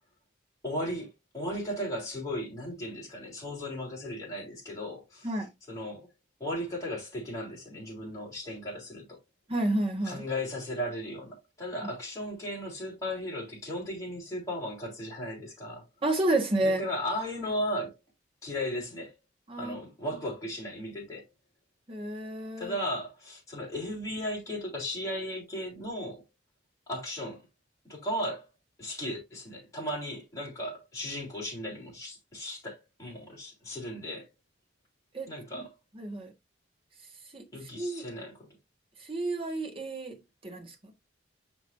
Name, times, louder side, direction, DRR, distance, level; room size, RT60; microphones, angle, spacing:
voice 1, 0.6-5.4 5.7-6.1 6.4-9.2 10.0-15.8 16.6-18.0 18.4-19.1 19.6-21.3 22.6-26.2 26.9-27.5 27.9-28.5 28.8-34.3 35.3-35.7 37.5-38.5, equal, 15° left, 3.3 m, -36 dB
voice 2, 9.5-10.2 16.0-16.8 19.5-19.8 21.9-22.7 35.1-35.3 35.9-36.3 37.3-37.4 37.8-38.0 39.1-40.2 40.4-40.9, right 1 dB, 30° right, 1.3 m, -30 dB
6.0 x 6.0 x 2.6 m
head